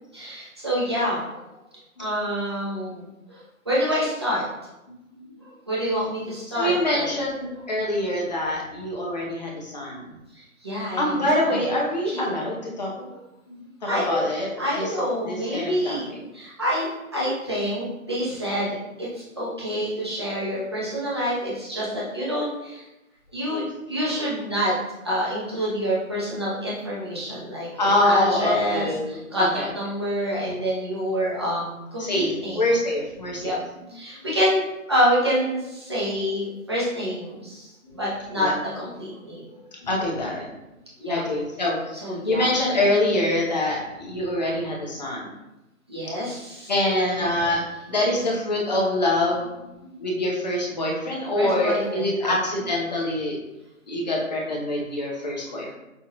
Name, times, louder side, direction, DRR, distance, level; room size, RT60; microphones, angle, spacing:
voice 1, 0.1-1.4 2.0-3.4 3.6-4.4 5.4-7.1 10.3-11.6 12.1-12.2 13.1-13.2 13.9-14.2 14.6-22.8 23.3-24.7 25.0-32.6 33.4-33.6 33.9-34.6 34.9-39.5 41.0-41.3 41.9-42.5 45.9-47.4 48.0-48.2 51.3-52.3 55.4-55.6, equal, 20° right, -7 dB, 0.6 m, -27 dB
voice 2, 6.5-10.0 11.0-13.0 13.5-16.2 27.8-29.7 32.0-33.6 34.2-34.4 37.8-38.0 38.4-38.6 39.8-40.5 41.1-42.0 42.2-45.3 46.7-47.6 47.9-53.4 53.9-55.7, left 1 dB, 30° left, -2 dB, 0.7 m, -25 dB
5.6 x 2.4 x 2.8 m, 0.96 s
figure-of-eight pair, 160°, 42 cm